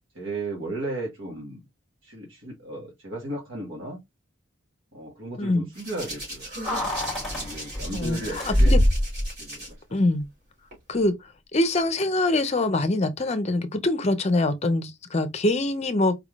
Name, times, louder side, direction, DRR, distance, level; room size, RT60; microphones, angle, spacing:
voice 1, 0.1-1.6 2.0-4.0 4.9-6.5 7.3-8.7 9.4-9.8, right 2 dB, 75° right, 1.6 m, -35 dB
Hands, 5.8-9.7 10.7-10.9, equal, 55° right, 2.8 m, -25 dB
Keys jangling, 6.6-9.0 9.3-9.4, left 1 dB, ahead, 1.4 m, -33 dB
voice 2, 7.9-8.8 9.9-10.3 10.9-11.1 11.5-16.2, left 2 dB, 35° left, 0.6 m, -24 dB
4.6 x 3.4 x 2.4 m
head